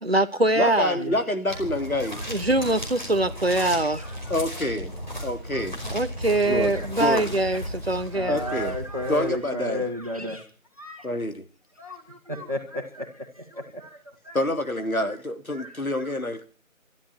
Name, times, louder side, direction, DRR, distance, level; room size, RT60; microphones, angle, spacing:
voice 1, 0.0-1.0 2.3-4.0 5.9-8.4, right 2 dB, 45° right, 1.0 m, -23 dB
voice 2, 0.6-2.2 4.3-4.9 5.2-5.8 6.4-6.7 7.0-7.3 8.3-8.8 9.1-9.9 11.0-11.4 14.3-16.5, left 1 dB, 80° left, 3.2 m, -27 dB
sound 1, 1.5-9.6, equal, 35° left, 5.1 m, -35 dB
voice 3, 1.9-2.2 2.6-2.7 3.5-4.7 5.2-5.6 6.7-6.9 7.5-7.6 8.0-10.4 10.8-11.1 11.8-14.0 14.2-14.5 15.5-16.0, left 1 dB, 25° right, 2.4 m, -35 dB
22.5 x 13.0 x 4.5 m
figure-of-eight pair, 175°, 42 cm